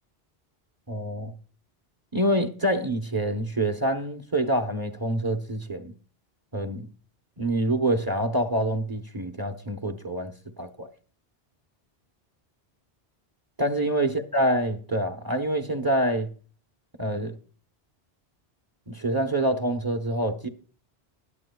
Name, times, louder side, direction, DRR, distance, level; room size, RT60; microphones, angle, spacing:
voice 1, 0.9-1.3 2.1-5.9 6.5-6.9 7.4-10.9 13.6-16.3 17.0-17.4 18.9-20.5, right 1 dB, 25° right, 0.8 m, -26 dB
21.0 x 7.4 x 2.3 m
omnidirectional pair, 1.1 m